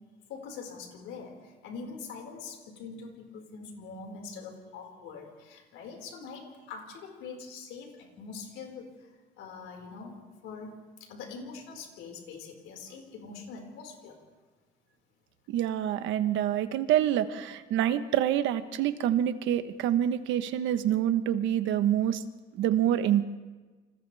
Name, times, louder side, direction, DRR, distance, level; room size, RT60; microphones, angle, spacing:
voice 1, 0.3-10.2 10.4-14.2, left 5 dB, 75° left, 1 dB, 5.2 m, -43 dB
voice 2, 15.5-22.2 22.6-23.2, right 11 dB, 70° right, 10 dB, 1.2 m, -26 dB
30.0 x 26.5 x 3.5 m, 1.3 s
cardioid pair, 175°, 20 cm